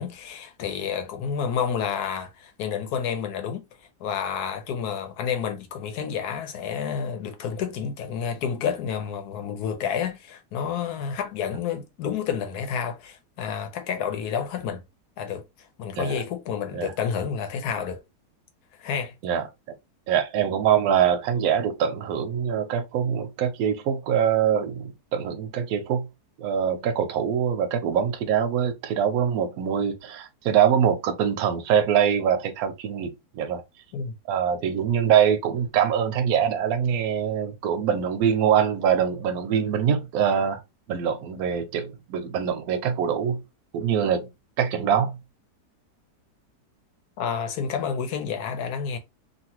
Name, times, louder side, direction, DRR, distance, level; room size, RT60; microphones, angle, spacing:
voice 1, 0.0-3.6 4.0-14.8 15.2-15.4 15.8-18.0 18.8-19.1 33.9-34.1 47.2-49.0, left 7 dB, 75° left, 1.2 m, -29 dB
voice 2, 20.1-26.1 26.4-33.6 34.3-40.6 40.9-43.4 43.7-44.3 44.6-45.1, right 8 dB, 70° right, 1.0 m, -24 dB
2.9 x 2.5 x 2.9 m
omnidirectional pair, 1.8 m